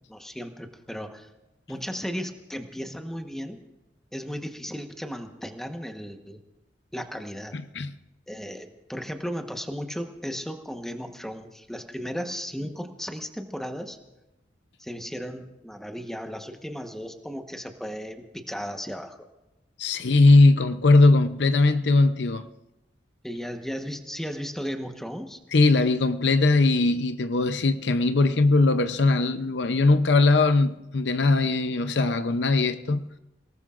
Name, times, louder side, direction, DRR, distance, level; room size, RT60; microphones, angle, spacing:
voice 1, 0.1-1.3 1.7-3.6 4.1-6.4 6.9-7.6 8.3-14.0 14.8-19.2 23.2-25.4, equal, ahead, 1.2 m, -35 dB
voice 2, 7.5-7.9 19.8-22.5 25.5-33.1, left 3 dB, 70° left, 0.7 m, -20 dB
28.5 x 18.5 x 2.5 m
head